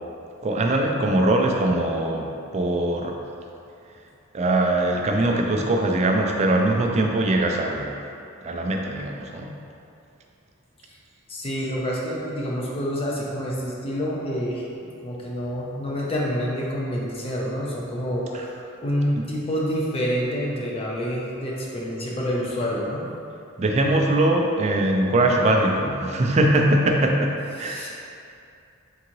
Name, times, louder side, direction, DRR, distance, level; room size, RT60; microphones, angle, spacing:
voice 1, 0.4-3.1 4.3-8.0 8.4-9.5 23.6-27.9, right 1 dB, 30° right, 1 dB, 0.3 m, -22 dB
voice 2, 11.3-23.1 26.0-26.2 27.6-27.9, equal, 30° left, -4 dB, 0.5 m, -28 dB
3.8 x 3.7 x 3.0 m, 2.6 s
head